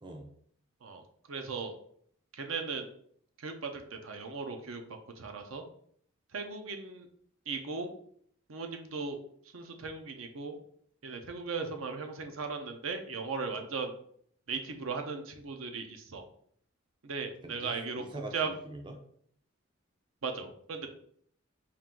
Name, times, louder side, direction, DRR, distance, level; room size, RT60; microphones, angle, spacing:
voice 1, 0.0-0.3 17.4-19.0, right 2 dB, 20° right, 3 dB, 0.4 m, -43 dB
voice 2, 1.3-1.7 2.3-2.9 3.4-4.8 5.2-5.6 6.3-7.1 7.5-7.9 8.5-9.2 9.5-10.6 11.0-13.9 14.5-16.2 17.0-18.0 18.3-18.5 20.2-20.9, right 4 dB, 70° right, 5 dB, 0.6 m, -37 dB
4.4 x 2.5 x 3.6 m, 0.63 s
head